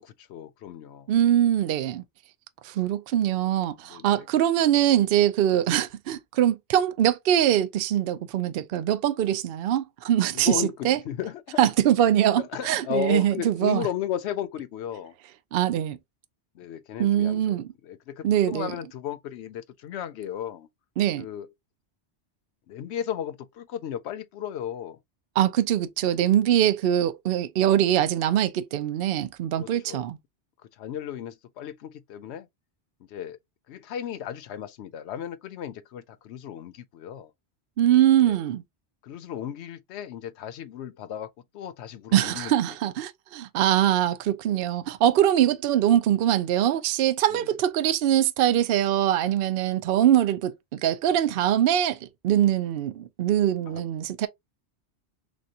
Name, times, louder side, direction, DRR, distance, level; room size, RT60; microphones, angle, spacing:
voice 1, 0.0-1.1 3.9-4.3 10.3-11.6 12.4-15.1 16.5-20.7 21.2-21.5 22.7-25.0 29.6-30.0 30.6-32.5 33.0-33.4 33.7-37.3 38.2-38.4 39.0-42.8 47.3-47.5 53.7-53.9, left 10 dB, 75° left, 0.9 m, -35 dB
voice 2, 1.1-2.0 2.6-11.0 11.6-13.9 15.5-16.0 17.0-17.7 18.2-18.7 21.0-21.3 25.4-30.2 37.8-38.6 42.1-54.3, right 11 dB, 65° right, 0.7 m, -23 dB
6.3 x 2.2 x 2.7 m
omnidirectional pair, 1.2 m